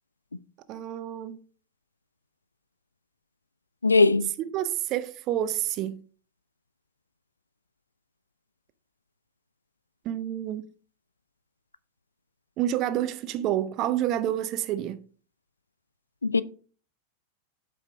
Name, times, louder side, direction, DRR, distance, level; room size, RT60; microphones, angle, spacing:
voice 1, 0.7-1.4 4.4-6.0 10.0-10.7 12.6-15.0, right 12 dB, 35° right, 0.7 m, -29 dB
voice 2, 3.8-4.3 16.2-16.4, left 3 dB, 80° left, 0.4 m, -20 dB
8.1 x 5.1 x 3.9 m
figure-of-eight pair, 90°, 0 cm